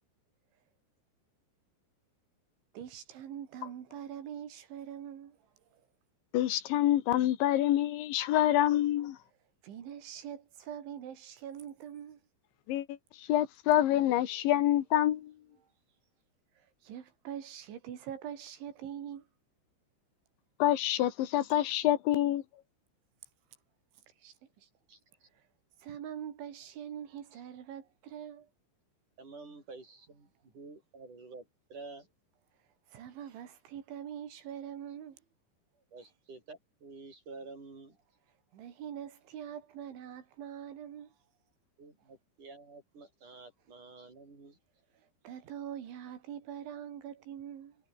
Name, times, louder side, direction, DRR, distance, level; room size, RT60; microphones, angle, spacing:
voice 1, 2.7-5.4 5.7-5.8 9.6-12.2 16.6-19.3 24.2-24.7 25.3-25.4 25.8-28.5 32.9-35.2 38.5-41.1 45.3-47.8, right 9 dB, 80° right, 5.2 m, -43 dB
voice 2, 6.3-9.2 12.7-15.3 20.6-22.4, left 13 dB, 80° left, 3.9 m, -27 dB
voice 3, 24.9-25.3 27.3-27.4 29.2-32.1 35.8-38.0 41.8-44.6, right 3 dB, 40° right, 8.9 m, -50 dB
omnidirectional pair, 5.3 m